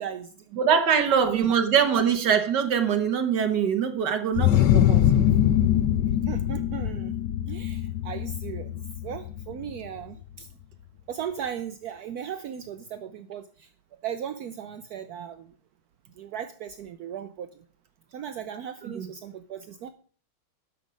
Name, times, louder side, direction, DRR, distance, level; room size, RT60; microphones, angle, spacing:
voice 1, 0.0-0.6 1.3-1.4 6.3-7.2 7.5-10.5 11.1-13.7 14.0-15.5 16.2-17.6 18.1-19.9, right 9 dB, 80° right, 0.8 m, -37 dB
voice 2, 0.6-5.0 18.8-19.1, right 7 dB, 60° right, 1.6 m, -23 dB
sound 1, 4.4-9.9, left 11 dB, 70° left, 1.0 m, -23 dB
12.5 x 5.9 x 5.1 m
omnidirectional pair, 2.3 m